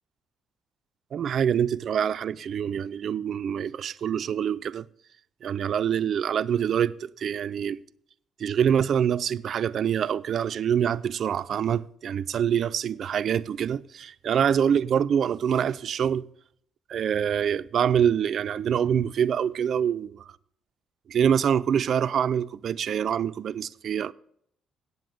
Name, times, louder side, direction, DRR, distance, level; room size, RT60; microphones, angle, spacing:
voice 1, 1.1-4.9 5.4-7.8 8.4-16.2 16.9-20.3 21.1-24.1, right 8 dB, 60° right, 0.4 m, -25 dB
9.4 x 7.5 x 6.5 m
hypercardioid pair, 50°, 0 cm